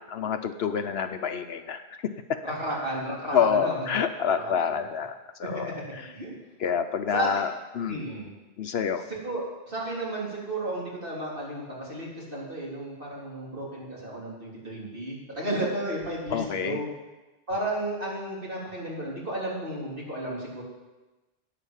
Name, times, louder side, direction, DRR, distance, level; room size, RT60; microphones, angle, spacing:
voice 1, 0.0-2.4 3.3-6.1 6.6-8.0 8.6-9.0 16.3-16.8, left 7 dB, 65° left, 9 dB, 0.9 m, -28 dB
voice 2, 2.4-3.8 4.4-4.8 5.4-5.6 6.1-6.3 7.1-7.4 7.9-8.3 9.2-16.9 17.5-20.6, right 1 dB, 50° right, -5 dB, 3.8 m, -33 dB
11.0 x 9.1 x 7.3 m, 1.1 s
omnidirectional pair, 1.2 m